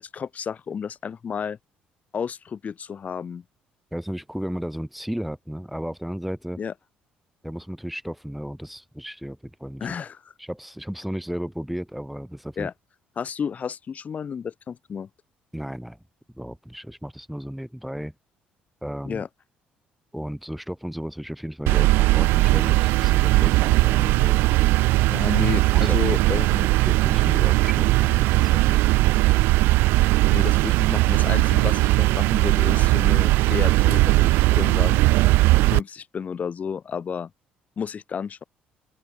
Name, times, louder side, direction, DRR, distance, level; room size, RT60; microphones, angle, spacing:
voice 1, 0.0-1.6 2.1-3.4 6.6-6.7 9.8-10.2 12.6-12.7 13.2-15.1 19.0-19.3 25.0-26.7 29.9-35.0 35.6-37.3 37.8-38.4, left 7 dB, 40° left, 6.7 m, -31 dB
voice 2, 3.9-6.6 7.4-10.0 10.4-12.7 15.5-16.0 16.4-18.1 18.8-19.2 20.1-24.4 25.7-28.8, equal, ahead, 5.4 m, -34 dB
sound 1, 21.7-35.8, right 19 dB, 85° right, 0.7 m, -19 dB
open air
cardioid pair, 95°, 4 cm